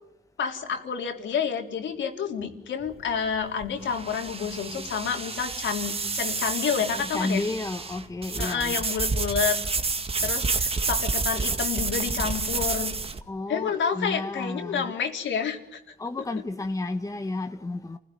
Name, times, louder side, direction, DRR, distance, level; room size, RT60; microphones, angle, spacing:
voice 1, 0.4-7.5 8.4-9.6 10.2-12.9 13.5-15.8, left 7 dB, 70° left, 3.8 m, -29 dB
sound 1, 2.8-13.2, right 4 dB, 30° right, 1.9 m, -29 dB
voice 2, 6.9-8.8 13.3-14.9 16.0-18.0, left 2 dB, 15° left, 1.3 m, -32 dB
28.5 x 16.5 x 9.5 m
cardioid pair, 90°, 20 cm